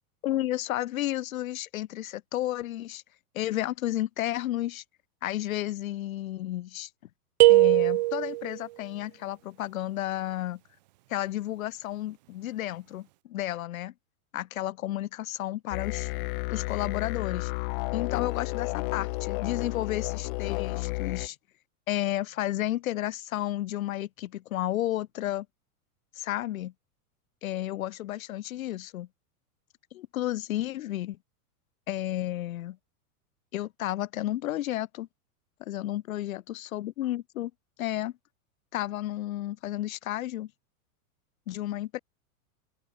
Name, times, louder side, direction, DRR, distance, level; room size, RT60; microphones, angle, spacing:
voice 1, 0.2-3.0 3.3-4.8 5.2-6.9 7.5-10.6 11.1-13.9 14.3-16.1 16.5-17.5 17.9-21.4 21.9-25.5 26.1-26.7 27.4-29.1 29.9-31.2 31.9-32.8 33.5-35.1 35.6-37.5 37.8-38.1 38.7-40.5 41.5-42.0, left 14 dB, 65° left, 2.9 m, -32 dB
sound 1, 7.4-8.6, right 19 dB, 30° right, 0.6 m, -20 dB
sound 2, 15.7-21.3, left 25 dB, 35° left, 1.6 m, -32 dB
open air
supercardioid pair, 175°, 45 cm